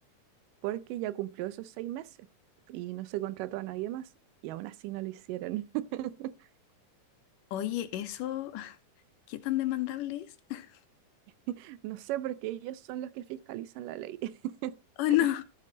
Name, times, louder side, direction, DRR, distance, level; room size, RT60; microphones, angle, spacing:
voice 1, 0.6-2.1 2.7-4.1 4.4-6.3 11.5-14.8, right 14 dB, 90° right, 2.3 m, -36 dB
voice 2, 7.5-8.8 9.3-10.7 15.0-15.4, left 15 dB, 85° left, 2.6 m, -30 dB
13.0 x 7.6 x 4.0 m
omnidirectional pair, 3.7 m